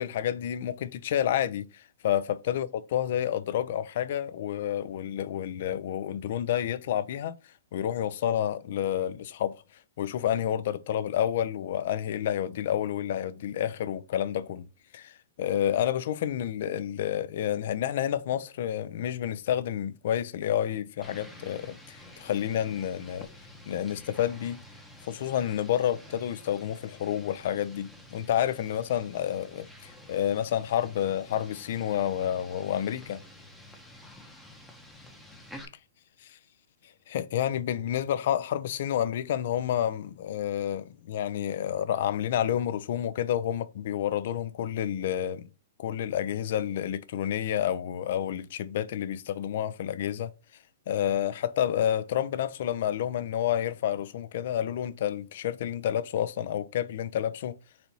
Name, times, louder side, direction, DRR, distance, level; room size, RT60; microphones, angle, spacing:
voice 1, 0.0-1.7 2.0-7.3 7.7-9.6 10.0-14.7 14.9-23.3 23.7-24.6 25.0-33.2 37.1-45.4 45.8-50.3 50.9-57.5, left 10 dB, 55° left, 0.4 m, -29 dB
sound 1, 21.0-35.6, left 1 dB, 5° left, 0.7 m, -50 dB
4.1 x 2.7 x 4.5 m
hypercardioid pair, 150°, 0 cm